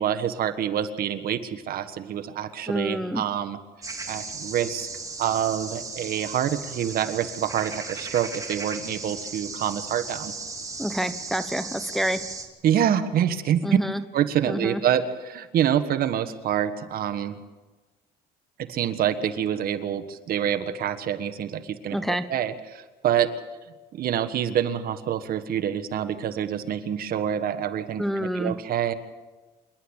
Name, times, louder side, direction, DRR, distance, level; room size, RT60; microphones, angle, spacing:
voice 1, 0.0-3.6 4.1-4.9 5.2-10.3 12.6-13.6 14.1-17.4 18.7-23.3 23.9-28.9, right 9 dB, 60° right, 11 dB, 1.5 m, -26 dB
voice 2, 2.7-3.2 10.8-12.2 13.6-14.0 14.5-14.8 21.9-22.2 28.0-28.5, equal, ahead, 10 dB, 0.9 m, -28 dB
sound 1, 3.8-12.5, right 3 dB, 20° right, 2.6 m, -36 dB
27.0 x 11.5 x 8.9 m, 1.3 s
cardioid pair, 110°, 17 cm